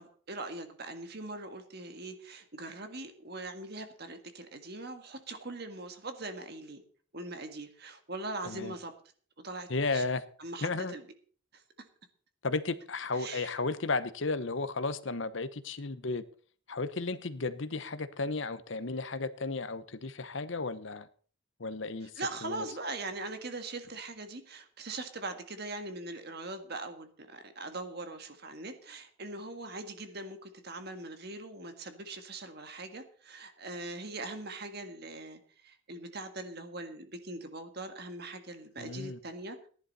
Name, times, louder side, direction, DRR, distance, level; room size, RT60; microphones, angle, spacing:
voice 1, 0.0-6.8 7.1-8.9 9.4-10.0 10.4-11.0 13.1-13.5 22.0-39.7, right 2 dB, 50° right, 7 dB, 1.7 m, -41 dB
voice 2, 9.7-10.2 10.6-10.9 12.4-16.2 16.7-21.1 21.6-22.1 22.4-22.6 38.8-39.2, left 3 dB, 60° left, 13 dB, 0.9 m, -34 dB
15.5 x 11.0 x 4.2 m, 0.43 s
head